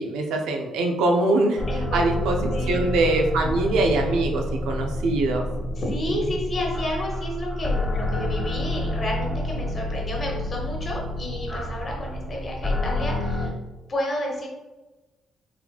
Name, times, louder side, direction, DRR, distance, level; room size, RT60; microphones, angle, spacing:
voice 1, 0.0-2.4 2.7-5.5 6.1-6.2, right 2 dB, 90° right, 2 dB, 0.5 m, -23 dB
sound 1, 1.6-13.5, left 1 dB, 15° left, 0.6 m, -28 dB
voice 2, 1.7-2.2 2.5-2.8 5.8-13.5 13.9-14.5, left 1 dB, 40° left, -1 dB, 1.1 m, -31 dB
4.0 x 2.8 x 2.3 m, 1.1 s
cardioid pair, 90°, 0 cm